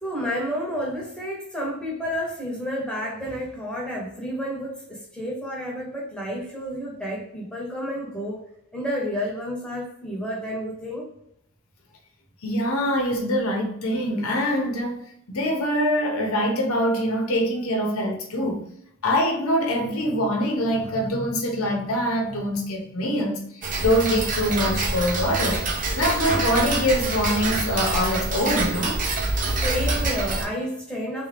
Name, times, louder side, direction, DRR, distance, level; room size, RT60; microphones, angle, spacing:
voice 1, 0.0-8.4 8.7-11.1 29.6-31.3, equal, 5° left, 1.0 m, -30 dB
voice 2, 12.4-18.7 19.0-25.6 26.0-29.0, equal, 65° left, 0.9 m, -24 dB
Tick-tock, 23.6-30.4, right 2 dB, 40° right, 0.7 m, -26 dB
3.5 x 2.8 x 3.3 m
head